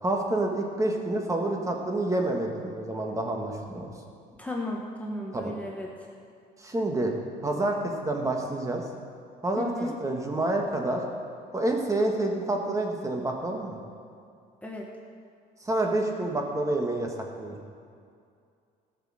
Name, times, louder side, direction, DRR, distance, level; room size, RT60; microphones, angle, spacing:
voice 1, 0.0-3.9 5.3-5.5 6.6-7.1 7.4-8.8 9.4-11.0 11.5-13.8 15.6-17.5, right 2 dB, 20° right, 1 dB, 1.7 m, -28 dB
voice 2, 4.4-5.9 9.6-9.9 14.6-14.9, left 1 dB, 10° left, -2 dB, 1.3 m, -34 dB
14.5 x 6.7 x 6.4 m, 2.3 s
cardioid pair, 110°, 17 cm